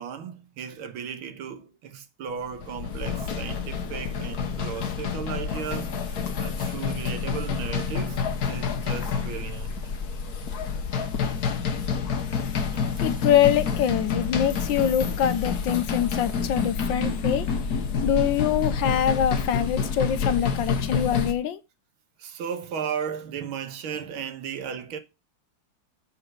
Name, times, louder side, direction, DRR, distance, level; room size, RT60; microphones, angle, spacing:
voice 1, 0.0-9.8 22.2-25.0, right 7 dB, 85° right, 1.9 m, -35 dB
sound 1, 2.4-21.3, left 6 dB, 55° left, 1.5 m, -28 dB
voice 2, 13.0-17.5 18.0-21.6, left 9 dB, 70° left, 1.4 m, -24 dB
8.9 x 4.4 x 6.5 m
omnidirectional pair, 2.3 m